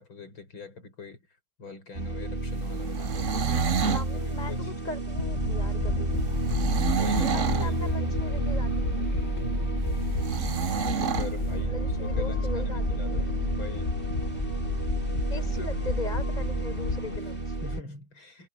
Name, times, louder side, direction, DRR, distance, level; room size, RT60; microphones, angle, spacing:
voice 1, 0.0-4.7 5.8-8.1 9.3-9.9 10.6-13.3 13.6-13.9 15.3-15.7 17.2-17.3 17.6-18.5, left 3 dB, 65° left, 6.5 m, -43 dB
sound 1, 1.9-17.8, right 2 dB, 25° right, 2.9 m, -30 dB
sound 2, 2.9-4.1 6.5-7.7 10.2-11.3, right 7 dB, 50° right, 0.9 m, -28 dB
voice 2, 3.8-6.2 7.2-9.1 11.6-13.4 15.3-17.6, left 2 dB, 20° left, 5.7 m, -39 dB
sound 3, 5.2-17.2, left 4 dB, 40° left, 1.4 m, -33 dB
omnidirectional pair, 2.4 m